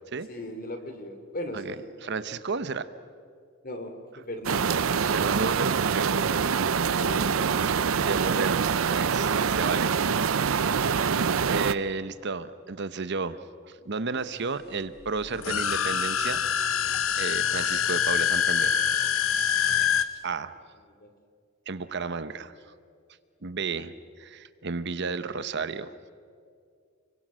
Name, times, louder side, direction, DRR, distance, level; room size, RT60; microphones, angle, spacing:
voice 1, 0.3-2.2 3.6-3.9 4.3-4.7 7.0-7.7 8.3-8.5 20.0-20.2 21.0-21.1, left 1 dB, 45° left, 7 dB, 3.0 m, -38 dB
voice 2, 2.0-2.9 5.1-6.1 7.7-7.8 8.0-9.9 11.5-13.4 13.6-16.4 17.1-18.9 19.4-20.5 21.7-22.5 23.4-25.9, right 4 dB, 55° right, 13 dB, 0.9 m, -33 dB
sound 1, 4.5-11.7, right 6 dB, 80° right, 0.6 m, -25 dB
sound 2, 15.3-20.0, left 8 dB, 80° left, 1.1 m, -25 dB
30.0 x 23.5 x 6.3 m, 2.2 s
head